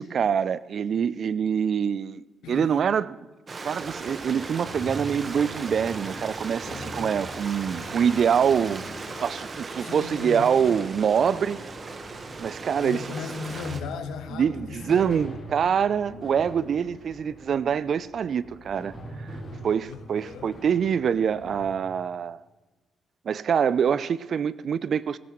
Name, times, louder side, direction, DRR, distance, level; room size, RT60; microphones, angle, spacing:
voice 1, 0.0-3.2 3.6-8.9 9.2-11.6 12.4-13.0 14.3-19.4 19.6-22.4 23.3-25.2, right 7 dB, 60° right, 0.4 m, -25 dB
Stream, 3.5-13.8, right 4 dB, 40° right, 1.3 m, -37 dB
sound 1, 3.8-21.8, equal, 40° left, 3.2 m, -43 dB
voice 2, 9.8-10.5 12.8-15.1 19.9-20.6, left 5 dB, 75° left, 1.2 m, -37 dB
16.0 x 14.0 x 3.1 m
hypercardioid pair, 45°, 0 cm